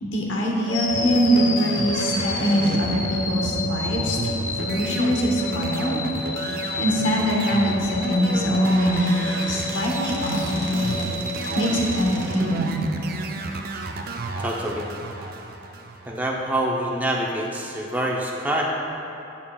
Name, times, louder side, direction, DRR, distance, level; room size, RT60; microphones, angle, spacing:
voice 1, 0.0-4.2 4.5-5.9 6.4-11.0 11.5-12.8, equal, 70° left, -1 dB, 1.0 m, -23 dB
sound 1, 0.7-12.8, left 2 dB, 40° left, 0.4 m, -30 dB
sound 2, 1.1-16.5, right 2 dB, 50° right, 0.4 m, -32 dB
sound 3, 1.8-3.0 4.8-4.9 5.8-5.9 6.3-6.4 6.7-6.8 8.2-8.3 8.6-12.5, right 2 dB, 85° right, 0.9 m, -37 dB
voice 2, 14.4-14.8 16.1-18.7, right 1 dB, 10° right, -3 dB, 0.6 m, -26 dB
8.4 x 7.3 x 2.3 m, 2.9 s
head